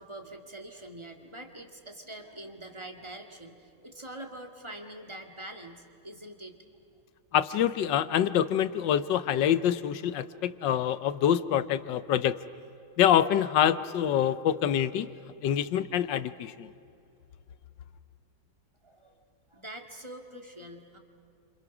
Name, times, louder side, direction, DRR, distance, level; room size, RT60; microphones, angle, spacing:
voice 1, 0.0-6.6 18.8-19.2 19.5-21.0, right 1 dB, 15° right, 4 dB, 1.8 m, -44 dB
voice 2, 7.3-12.4 13.0-15.1 15.4-16.7, left 10 dB, 70° left, 14 dB, 1.3 m, -26 dB
29.5 x 27.0 x 6.0 m, 2.7 s
omnidirectional pair, 2.2 m